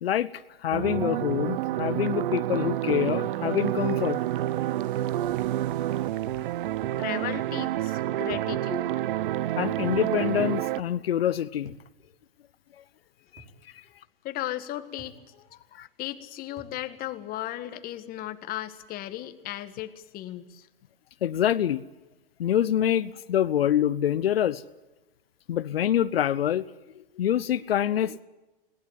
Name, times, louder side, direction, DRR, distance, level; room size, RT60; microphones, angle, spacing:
voice 1, 0.0-4.2 9.6-11.7 13.3-13.8 15.7-15.9 21.2-21.8 22.4-24.6 25.5-26.7 27.2-28.2, left 10 dB, 85° left, 14 dB, 0.8 m, -26 dB
sound 1, 0.7-10.8, right 13 dB, 65° right, 0.8 m, -28 dB
voice 2, 7.0-8.9 14.2-15.1 16.0-20.7, left 14 dB, 30° left, 10 dB, 1.8 m, -36 dB
sound 2, 8.3-8.6 9.9-10.2 11.7-11.9 13.4-13.6 15.0-15.2 16.6-16.8, right 2 dB, 35° right, 6.1 m, -51 dB
21.0 x 18.5 x 9.4 m, 1.1 s
hypercardioid pair, 130°, 29 cm